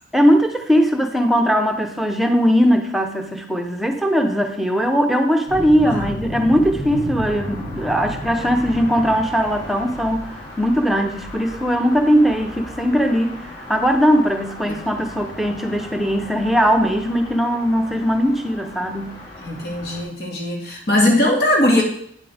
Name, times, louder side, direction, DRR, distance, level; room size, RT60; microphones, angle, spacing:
voice 1, 0.1-13.4 13.7-19.2, equal, ahead, 3 dB, 0.8 m, -19 dB
sound 1, 5.5-20.0, equal, 30° left, 2.9 m, -34 dB
voice 2, 19.4-21.8, left 1 dB, 60° left, -1 dB, 2.3 m, -20 dB
9.4 x 7.5 x 3.5 m, 0.67 s
head